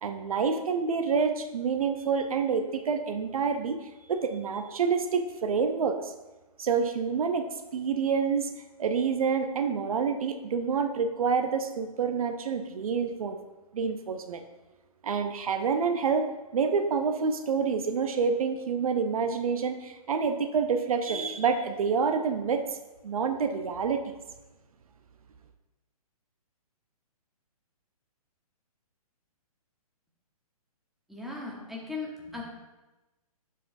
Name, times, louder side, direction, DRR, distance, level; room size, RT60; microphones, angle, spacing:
voice 1, 0.0-6.1 6.6-8.5 8.8-13.4 13.7-14.4 15.0-16.3 16.5-22.8 23.0-24.1, right 5 dB, 65° right, 7 dB, 0.7 m, -28 dB
voice 2, 31.1-32.4, left 3 dB, ahead, -3 dB, 1.0 m, -37 dB
11.5 x 4.9 x 2.6 m, 1.1 s
hypercardioid pair, 145°, 19 cm